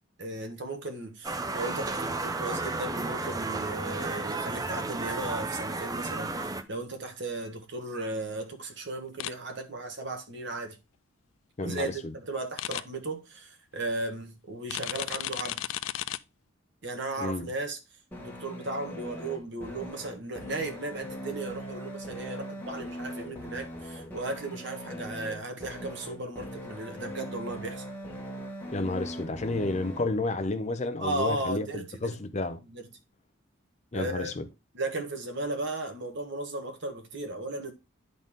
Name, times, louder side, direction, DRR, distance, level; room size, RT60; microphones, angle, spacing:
voice 1, 0.2-6.3 6.7-10.8 11.6-15.6 16.8-17.8 18.2-27.8 31.0-32.1 32.7-32.9 33.9-34.3 34.7-37.7, right 2 dB, 60° right, 1.4 m, -35 dB
sound 1, 1.2-6.6, right 3 dB, 20° right, 0.5 m, -33 dB
sound 2, 9.2-9.3 12.6-12.8 14.7-16.2, left 13 dB, 75° left, 0.4 m, -33 dB
voice 2, 11.6-11.9 17.2-17.5 28.7-32.6 33.9-34.4, left 2 dB, 35° left, 0.6 m, -31 dB
sound 3, 18.1-30.1, equal, 10° left, 1.6 m, -40 dB
10.5 x 4.1 x 3.6 m
head